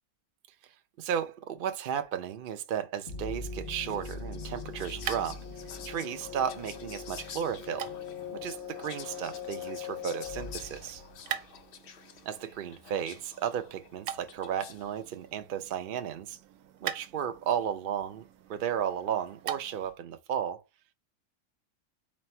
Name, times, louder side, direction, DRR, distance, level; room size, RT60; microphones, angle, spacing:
voice 1, 1.0-5.4 5.8-7.9 8.3-11.0 12.2-16.4 16.8-20.6, right 9 dB, 85° right, 0.4 m, -34 dB
sound 1, 3.1-11.7, left 5 dB, 40° left, 0.9 m, -41 dB
Whispering, 3.6-15.0, left 7 dB, 75° left, 0.5 m, -49 dB
sound 2, 4.4-20.0, right 10 dB, 70° right, 0.9 m, -44 dB
4.2 x 2.0 x 4.2 m
omnidirectional pair, 1.6 m